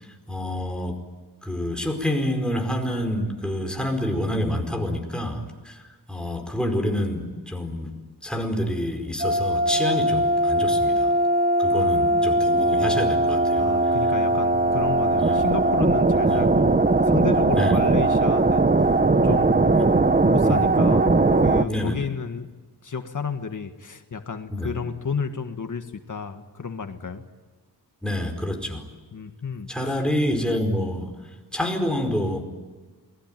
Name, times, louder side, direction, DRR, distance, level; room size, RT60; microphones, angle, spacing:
voice 1, 0.3-1.0 1.4-5.8 6.1-8.0 8.2-11.1 11.6-13.7 15.2-15.5 16.2-16.4 17.5-17.8 19.7-20.0 20.4-20.7 21.7-22.0 24.5-24.7 28.0-28.9 29.7-31.2 31.5-32.4, left 1 dB, ahead, 3 dB, 4.8 m, -27 dB
sound 1, 9.2-21.6, right 2 dB, 20° right, 1.0 m, -20 dB
voice 2, 11.7-12.7 13.6-19.0 19.2-19.8 20.1-22.5 22.8-27.2 29.1-30.0, left 5 dB, 50° left, 6 dB, 1.6 m, -32 dB
28.5 x 20.5 x 9.2 m, 1.4 s
wide cardioid pair, 110°, 39 cm